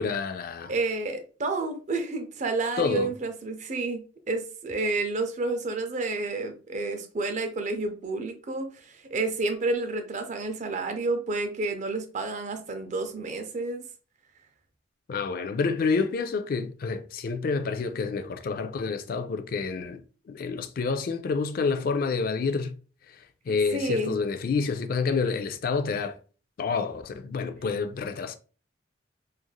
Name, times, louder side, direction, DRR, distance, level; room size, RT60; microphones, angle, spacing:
voice 1, 0.0-0.7 2.8-3.1 15.1-22.8 23.1-26.2 26.6-28.4, left 4 dB, 50° left, 0.3 m, -28 dB
voice 2, 0.7-13.8 23.7-24.2, right 3 dB, 40° right, 0.5 m, -30 dB
3.2 x 2.5 x 2.2 m
head